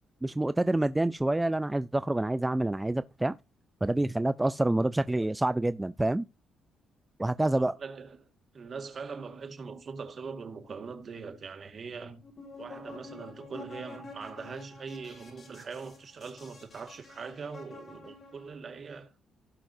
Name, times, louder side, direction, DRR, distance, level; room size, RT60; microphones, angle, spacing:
voice 1, 0.2-3.4 3.8-6.2 7.2-7.7, right 1 dB, 10° right, 0.4 m, -27 dB
voice 2, 7.6-8.2 8.5-12.2 12.6-19.1, right 5 dB, 45° right, 1.7 m, -42 dB
sound 1, 12.2-18.5, left 3 dB, 40° left, 5.8 m, -48 dB
17.0 x 5.7 x 2.7 m
cardioid pair, 90°, 0 cm